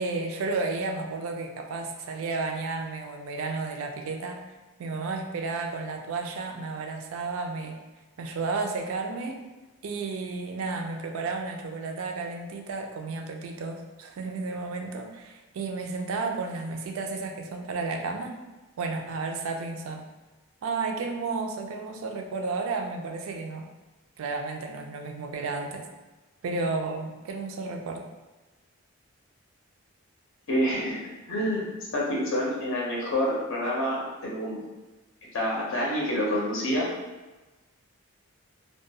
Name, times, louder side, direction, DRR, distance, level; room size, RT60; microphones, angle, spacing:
voice 1, 0.0-4.4 4.8-7.8 8.2-9.4 9.8-18.4 18.8-20.1 20.6-23.7 24.2-25.9 26.4-28.0, right 3 dB, 70° right, 4 dB, 0.3 m, -32 dB
voice 2, 30.5-31.0 31.3-31.7 31.9-34.6 35.3-36.9, equal, 60° left, -4 dB, 0.5 m, -27 dB
2.3 x 2.2 x 2.6 m, 1.1 s
head